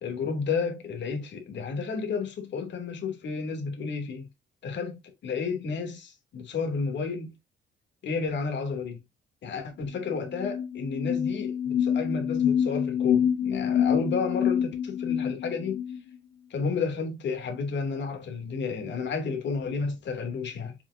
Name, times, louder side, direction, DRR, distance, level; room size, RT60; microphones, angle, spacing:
voice 1, 0.0-4.3 4.6-7.3 8.0-9.0 9.4-15.8 16.5-20.7, left 5 dB, 65° left, 2.7 m, -31 dB
sound 1, 9.9-10.0 10.3-16.0, left 8 dB, 85° left, 1.6 m, -27 dB
7.2 x 5.5 x 2.7 m
cardioid pair, 90°, 20 cm